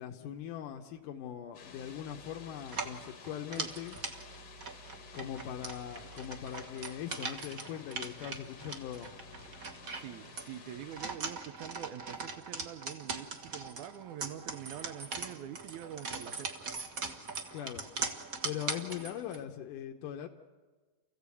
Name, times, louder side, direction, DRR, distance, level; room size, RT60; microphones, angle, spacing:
voice 1, 0.0-4.0 5.1-9.1 17.5-17.9 18.4-20.3, left 10 dB, 80° left, 3 dB, 2.5 m, -41 dB
sound 1, 1.5-11.2, left 4 dB, 50° left, 1.4 m, -52 dB
sound 2, 2.6-19.4, right 4 dB, 45° right, 1.1 m, -41 dB
voice 2, 9.9-16.8, right 10 dB, 75° right, 11 dB, 2.1 m, -45 dB
29.5 x 15.0 x 8.4 m, 1.3 s
omnidirectional pair, 3.7 m